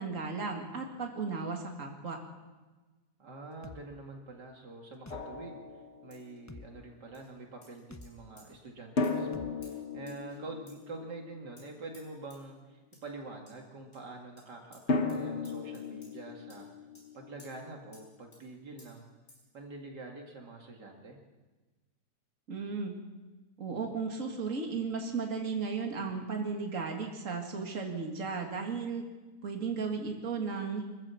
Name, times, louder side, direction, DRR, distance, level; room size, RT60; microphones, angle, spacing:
voice 1, 0.0-2.2 22.5-23.0 23.6-29.0 29.4-30.8, right 4 dB, 50° right, 2 dB, 2.6 m, -35 dB
voice 2, 3.2-16.7 17.1-19.1 19.5-21.2, right 2 dB, 75° right, 1 dB, 2.9 m, -46 dB
sound 1, 3.6-3.8 5.1-5.3 6.5-6.7 7.9-8.1 9.3-9.5, left 2 dB, 15° left, 0.7 m, -47 dB
Drum, 5.1-6.5 9.0-11.9 14.9-17.7, left 3 dB, 45° left, 1.4 m, -36 dB
sound 2, 6.1-6.3 7.1-7.3 7.6-8.1 8.4-8.5 9.0-9.2 9.6-9.7 10.1-10.4 10.7-10.8 11.6-11.7 11.9-12.0 12.3-12.4 12.9-13.0 13.5-13.6 13.9-14.0 14.4-14.5 14.7-14.8 15.1-15.2 15.4-16.1 16.5-16.6 16.9-17.1 17.4-17.5 17.9-18.1 18.3-18.4 18.8-18.9 19.3-19.4, left 1 dB, 60° left, 6.8 m, -58 dB
25.5 x 14.5 x 7.1 m, 1.3 s
omnidirectional pair, 1.8 m